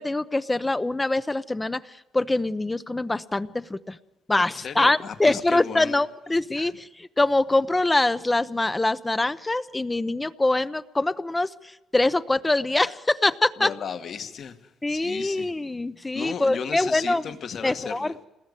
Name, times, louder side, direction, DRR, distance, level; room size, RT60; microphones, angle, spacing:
voice 1, 0.0-4.0 4.3-13.7 14.8-17.2 17.6-18.1, left 2 dB, 15° left, 0.8 m, -24 dB
voice 2, 4.6-6.0 6.6-6.7 13.6-15.5 16.1-18.1, left 7 dB, 60° left, 2.0 m, -35 dB
27.5 x 20.0 x 8.4 m
cardioid pair, 90°, 0 cm